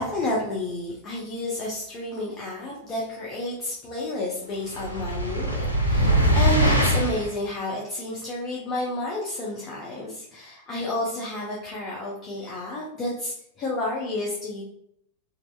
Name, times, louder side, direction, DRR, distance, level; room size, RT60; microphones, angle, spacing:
voice 1, 0.0-14.6, left 2 dB, 30° left, -4 dB, 0.5 m, -31 dB
sound 1, 4.7-7.3, right 1 dB, 85° left, 0.4 m, -22 dB
2.7 x 2.0 x 2.3 m, 0.74 s
figure-of-eight pair, 90°, 0 cm